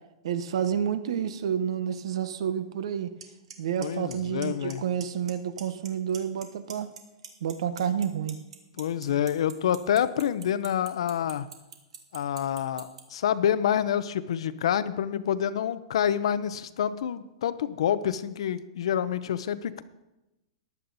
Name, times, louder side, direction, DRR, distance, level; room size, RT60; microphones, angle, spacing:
voice 1, 0.2-3.1 3.6-6.9 7.4-8.4, right 8 dB, 70° right, 12 dB, 1.0 m, -29 dB
Clock, 3.2-3.3 3.5-3.9 4.1-4.7 5.0-5.3 5.6-6.4 6.7-13.0, right 8 dB, 85° right, 1.9 m, -41 dB
voice 2, 3.8-4.8 8.8-11.5 12.1-19.8, left 9 dB, 70° left, 14 dB, 0.7 m, -27 dB
14.5 x 11.0 x 4.1 m, 0.97 s
supercardioid pair, 165°, 3 cm